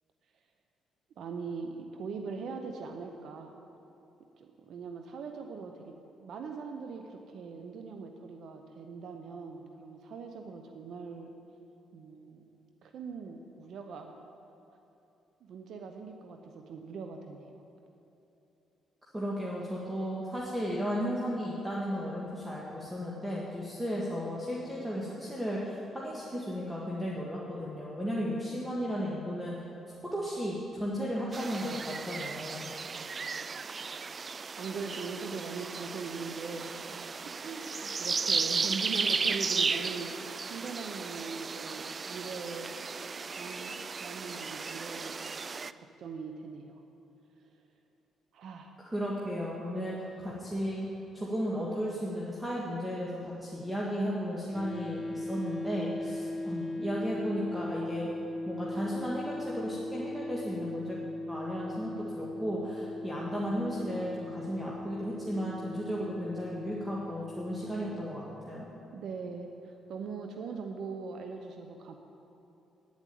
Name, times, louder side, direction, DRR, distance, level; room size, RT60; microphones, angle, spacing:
voice 1, 1.2-3.5 4.4-5.9 6.2-11.3 11.9-12.4 12.8-14.2 15.4-17.6 32.9-33.1 34.6-37.1 37.4-40.1 40.5-42.8 43.3-45.4 45.8-46.8 47.4-47.5 48.3-48.7 68.9-72.0, right 5 dB, 70° right, 5 dB, 0.8 m, -41 dB
voice 2, 19.1-29.6 30.1-32.7 48.9-50.9 51.1-58.1 58.4-61.0 61.3-68.7, equal, 10° right, -5 dB, 1.7 m, -34 dB
sound 1, 31.3-45.7, right 5 dB, 35° right, 0.3 m, -35 dB
sound 2, 54.5-68.1, left 1 dB, 20° left, 1.5 m, -39 dB
9.8 x 7.3 x 9.2 m, 2.9 s
cardioid pair, 90°, 0 cm